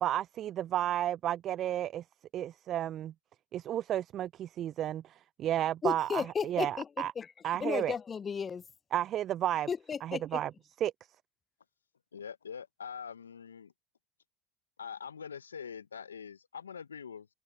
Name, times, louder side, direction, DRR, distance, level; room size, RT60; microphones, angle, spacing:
voice 1, 0.0-2.0 2.3-3.1 3.5-7.1 7.4-7.9 8.9-9.7 10.0-10.5 10.8-10.9, right 11 dB, 45° right, 0.4 m, -32 dB
voice 2, 5.8-7.3 7.6-8.6 9.7-10.4, left 6 dB, 30° left, 0.5 m, -34 dB
voice 3, 12.1-13.7 14.8-17.3, left 7 dB, 85° left, 0.9 m, -44 dB
figure-of-eight pair, 75°, 0 cm